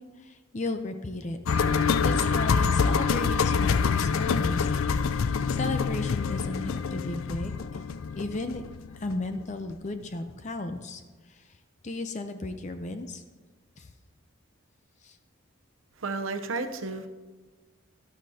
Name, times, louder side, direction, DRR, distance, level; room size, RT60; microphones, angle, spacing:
voice 1, 0.0-1.4 2.0-4.7 5.0-7.8 8.1-11.0 11.3-11.6 11.8-13.2 13.8-13.9 15.0-15.2, left 2 dB, 35° left, 8 dB, 0.5 m, -35 dB
sound 1, 1.5-9.4 9.7-9.8, left 5 dB, 80° left, 0.4 m, -26 dB
voice 2, 16.0-17.1, right 3 dB, 75° right, 7 dB, 0.8 m, -32 dB
12.5 x 11.5 x 2.8 m, 1.3 s
head